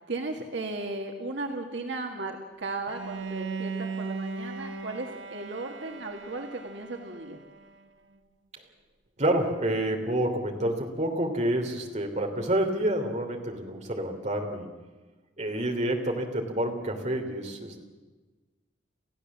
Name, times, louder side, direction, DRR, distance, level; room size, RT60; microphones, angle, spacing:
voice 1, 0.1-7.4, right 2 dB, 70° right, 3 dB, 1.9 m, -36 dB
Bowed string instrument, 2.9-7.9, right 4 dB, 85° right, 1.1 m, -38 dB
voice 2, 9.2-14.7 15.4-17.8, right 1 dB, 40° right, 3 dB, 3.1 m, -28 dB
28.5 x 15.5 x 7.4 m, 1.3 s
head